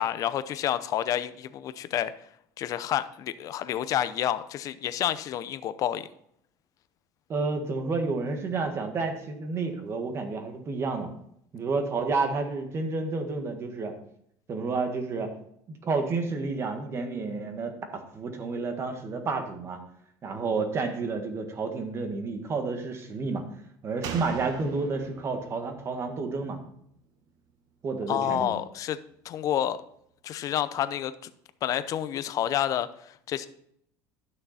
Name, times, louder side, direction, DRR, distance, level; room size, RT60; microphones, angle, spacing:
voice 1, 0.0-2.1 2.6-6.1 28.1-29.0 29.2-29.8 30.2-31.3 31.6-33.5, left 11 dB, 50° left, 13 dB, 0.7 m, -29 dB
voice 2, 7.3-11.1 11.5-13.9 14.5-15.3 15.7-19.8 20.2-23.4 23.8-26.6 27.8-28.5, right 4 dB, 35° right, 6 dB, 1.7 m, -30 dB
Slam, 24.0-27.5 27.8-27.9, right 6 dB, 55° right, 1.2 m, -42 dB
11.0 x 6.6 x 4.2 m, 0.71 s
cardioid pair, 120°, 8 cm